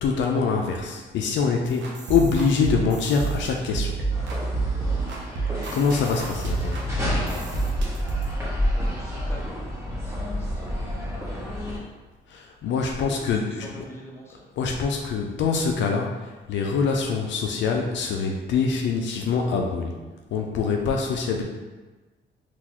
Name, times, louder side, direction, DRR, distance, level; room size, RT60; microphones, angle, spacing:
voice 1, 0.0-4.0 5.7-6.8 12.3-13.8 14.6-20.0 20.3-21.4, left 5 dB, 70° left, 2 dB, 0.4 m, -24 dB
sound 1, 1.7-8.3, right 5 dB, 70° right, 0.7 m, -29 dB
sound 2, 4.1-11.8, left 1 dB, 15° right, 1.3 m, -29 dB
voice 2, 7.2-7.6 8.7-10.7 12.6-14.5, equal, 10° left, -3 dB, 0.8 m, -44 dB
3.8 x 2.4 x 2.9 m, 1.2 s
cardioid pair, 90°, 20 cm